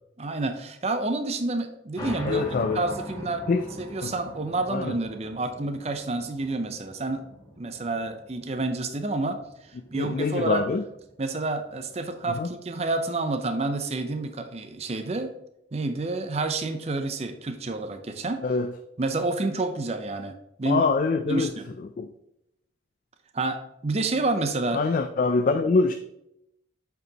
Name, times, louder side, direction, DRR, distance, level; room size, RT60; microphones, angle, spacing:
voice 1, 0.2-2.4 2.7-3.5 3.8-7.2 7.6-9.4 9.9-10.7 11.2-15.3 15.7-18.4 19.0-20.9 21.3-21.6 23.3-24.8, right 2 dB, 35° right, 0.5 m, -29 dB
sound 1, 2.0-13.1, equal, 20° left, 1.3 m, -43 dB
voice 2, 2.2-2.8 3.5-3.7 4.0-4.1 4.7-5.0 9.9-10.8 12.3-12.5 18.4-18.7 20.7-21.5 22.0-22.1 24.7-25.9, left 4 dB, 45° left, 0.3 m, -24 dB
7.9 x 4.6 x 2.9 m
head